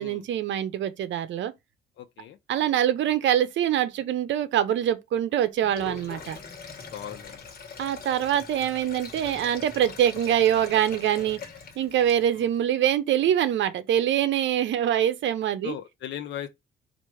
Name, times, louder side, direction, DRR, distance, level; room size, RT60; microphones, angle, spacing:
voice 1, 0.0-1.5 2.5-6.4 7.8-11.4 11.8-15.7, right 10 dB, 70° right, 0.7 m, -24 dB
voice 2, 2.0-2.4 6.9-7.4 12.4-12.5 15.6-16.5, left 10 dB, 70° left, 0.6 m, -37 dB
Sink (filling or washing), 5.6-12.5, left 5 dB, 50° left, 1.3 m, -42 dB
4.4 x 2.5 x 4.7 m
cardioid pair, 90°, 20 cm